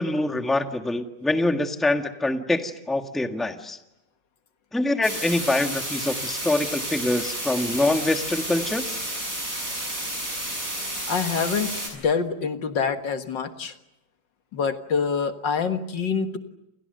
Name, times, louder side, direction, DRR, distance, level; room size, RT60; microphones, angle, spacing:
voice 1, 0.0-3.8 4.7-9.0, left 2 dB, ahead, 5 dB, 1.5 m, -25 dB
sound 1, 5.0-11.9, right 1 dB, 50° right, 7.4 m, -31 dB
voice 2, 11.1-13.7 14.5-16.4, left 5 dB, 80° left, 7 dB, 2.3 m, -26 dB
29.0 x 29.0 x 6.7 m, 0.86 s
omnidirectional pair, 1.9 m